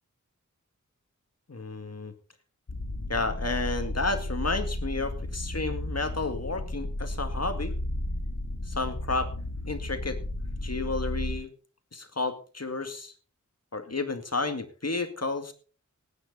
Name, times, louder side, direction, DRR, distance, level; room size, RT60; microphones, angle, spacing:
voice 1, 1.5-2.1 3.1-7.7 8.7-9.3 9.7-10.2 10.6-11.5 11.9-13.1 13.7-15.5, left 3 dB, 55° left, 7 dB, 2.2 m, -31 dB
sound 1, 2.7-11.3, left 1 dB, 90° left, 3.1 m, -33 dB
17.5 x 9.7 x 4.0 m, 0.38 s
wide cardioid pair, 45°, 31 cm